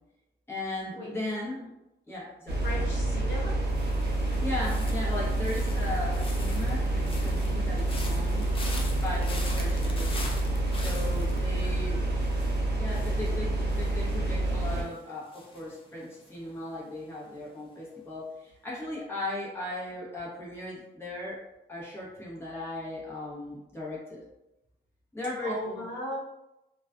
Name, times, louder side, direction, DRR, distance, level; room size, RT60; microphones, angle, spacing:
voice 1, 0.5-1.7 2.1-2.9 4.2-8.5 8.9-10.3 10.8-12.0 12.8-21.4 21.7-24.2 25.1-25.9, left 2 dB, 10° left, -7 dB, 0.8 m, -37 dB
sound 1, 2.5-14.8, right 2 dB, 55° right, 0.6 m, -28 dB
voice 2, 2.6-3.7 11.6-12.1 25.4-26.2, equal, 70° left, -5 dB, 0.9 m, -37 dB
sound 2, 3.7-16.7 17.0-17.4, left 2 dB, 25° left, 0.4 m, -45 dB
2.3 x 2.2 x 2.4 m, 0.94 s
cardioid pair, 110°, 20 cm